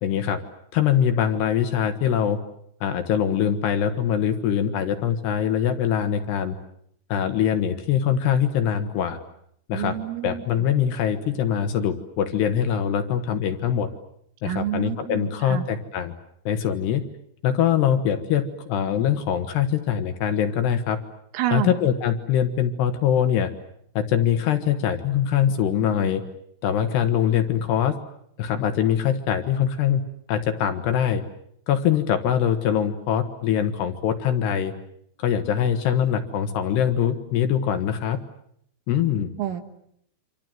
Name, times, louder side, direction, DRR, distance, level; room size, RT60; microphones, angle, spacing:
voice 1, 0.0-0.4 0.7-2.4 2.8-6.6 7.1-9.2 9.7-10.0 10.2-13.9 14.4-16.1 16.5-17.1 17.4-21.0 21.5-23.5 24.0-26.2 26.6-28.0 28.4-31.2 31.7-34.7 35.2-38.2 38.9-39.3, left 9 dB, 70° left, 8 dB, 3.0 m, -23 dB
voice 2, 9.7-10.4 14.4-15.6 21.3-21.7 39.4-39.6, right 12 dB, 80° right, 9 dB, 4.1 m, -28 dB
28.0 x 26.0 x 7.7 m, 0.70 s
omnidirectional pair, 5.8 m